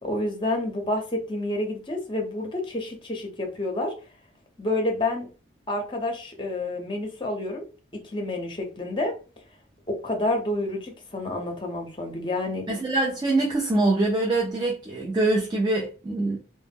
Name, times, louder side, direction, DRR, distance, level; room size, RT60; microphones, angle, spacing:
voice 1, 0.0-3.9 4.6-5.3 5.7-7.7 7.9-9.2 9.9-12.6, left 2 dB, 25° left, 0.6 m, -29 dB
voice 2, 12.7-16.4, right 2 dB, 20° right, 0.3 m, -24 dB
2.1 x 2.0 x 3.3 m
head